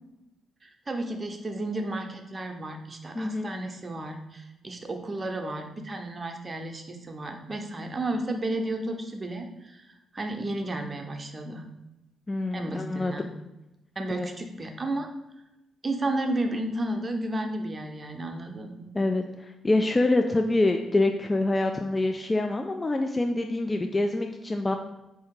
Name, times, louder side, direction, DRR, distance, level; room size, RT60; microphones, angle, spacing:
voice 1, 0.6-9.8 10.1-11.6 12.5-13.3 14.0-15.1 15.8-18.9, right 1 dB, 35° right, 4 dB, 0.7 m, -32 dB
voice 2, 3.2-3.5 12.3-13.3 14.2-14.3 18.9-19.2 19.6-24.8, left 2 dB, 25° left, 4 dB, 0.4 m, -25 dB
4.2 x 2.7 x 3.7 m, 0.95 s
hypercardioid pair, 45°, 0 cm